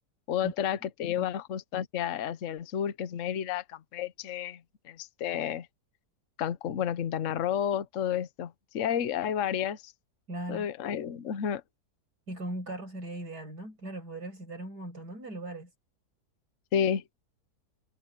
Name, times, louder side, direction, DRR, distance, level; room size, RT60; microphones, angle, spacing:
voice 1, 0.3-4.6 4.8-5.7 6.4-9.9 10.5-11.6 16.7-17.0, left 9 dB, 55° left, 1.1 m, -31 dB
voice 2, 10.3-10.7 12.3-15.7, right 1 dB, 75° right, 7.7 m, -39 dB
omnidirectional pair, 1.7 m